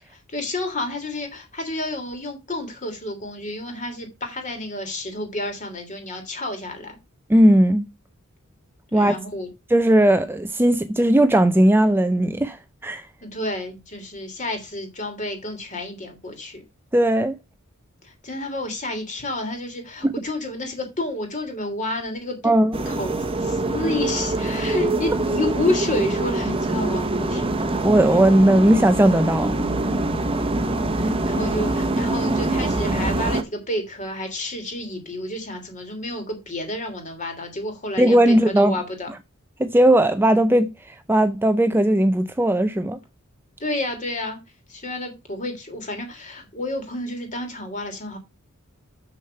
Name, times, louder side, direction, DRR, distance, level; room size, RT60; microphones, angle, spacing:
voice 1, 0.1-7.0 8.9-9.5 13.2-16.6 18.0-23.1 23.4-27.7 30.9-39.1 43.6-44.4 44.7-48.2, left 1 dB, 35° left, 3.2 m, -30 dB
voice 2, 7.3-7.9 8.9-9.1 9.7-12.6 12.8-13.0 16.9-17.3 20.0-20.1 22.4-22.7 27.8-29.6 38.0-38.8 39.6-40.7 41.1-43.0, right 1 dB, 10° right, 0.5 m, -17 dB
sound 1, 22.7-33.4, right 2 dB, 25° right, 1.0 m, -24 dB
7.3 x 6.4 x 5.7 m
head